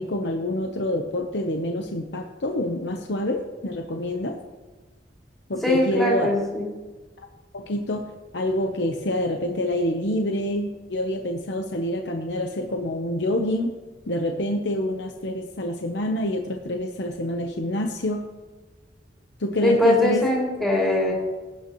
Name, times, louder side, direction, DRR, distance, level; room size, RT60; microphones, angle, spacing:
voice 1, 0.0-4.4 5.5-6.3 7.5-13.7 14.1-18.3 19.4-20.2, left 1 dB, 70° left, 4 dB, 0.9 m, -27 dB
voice 2, 5.6-6.7 19.6-21.1, left 1 dB, ahead, -5 dB, 2.7 m, -21 dB
18.0 x 8.6 x 3.1 m, 1.3 s
head